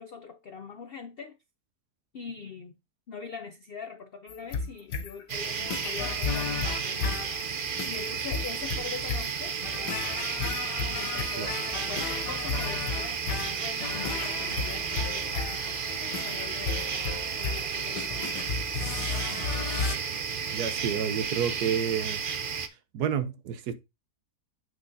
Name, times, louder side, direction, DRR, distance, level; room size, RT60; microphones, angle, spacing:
voice 1, 0.0-1.4 2.1-2.8 3.1-7.5 7.9-9.6 10.9-13.2 13.5-18.7, left 5 dB, 70° left, 0.5 m, -43 dB
sound 1, 4.3-20.0, left 5 dB, 90° left, 1.5 m, -34 dB
sound 2, 5.3-22.7, right 6 dB, 50° right, 0.6 m, -33 dB
voice 2, 20.5-22.2 22.9-23.8, right 8 dB, 75° right, 1.3 m, -29 dB
7.9 x 6.1 x 2.7 m
omnidirectional pair, 1.7 m